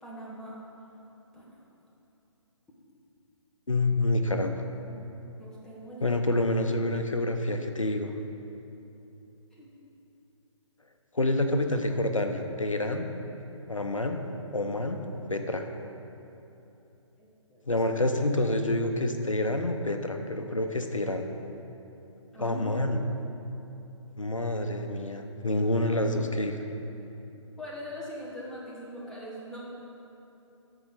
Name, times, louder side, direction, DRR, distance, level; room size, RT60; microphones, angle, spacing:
voice 1, 0.0-0.6 1.3-1.5 4.9-5.0 5.4-6.2 9.5-9.7 17.2-17.6 22.3-22.6 27.6-29.6, equal, 5° left, -6 dB, 1.0 m, -42 dB
voice 2, 3.7-4.5 6.0-8.1 11.1-13.1 13.7-14.2 14.5-15.0 15.3-15.6 17.7-21.3 22.4-23.0 24.2-26.6, left 1 dB, 85° left, 6 dB, 0.8 m, -27 dB
13.5 x 4.9 x 4.1 m, 3.0 s
figure-of-eight pair, 135°, 16 cm